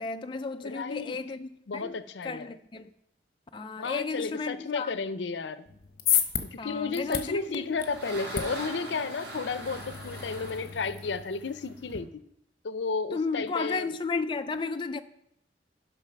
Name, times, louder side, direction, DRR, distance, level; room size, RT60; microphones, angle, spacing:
voice 1, 0.0-2.0 2.2-2.9 3.5-4.9 6.6-7.7 13.1-15.0, left 4 dB, 25° left, 0.4 m, -33 dB
voice 2, 0.6-1.2 1.7-2.6 3.8-5.7 6.4-12.1 12.6-13.9, left 4 dB, 85° left, 0.6 m, -33 dB
sound 1, 5.7-12.0, left 9 dB, 55° left, 1.0 m, -34 dB
sound 2, 7.3-12.0, right 1 dB, 85° right, 4.5 m, -42 dB
10.5 x 5.7 x 5.8 m
head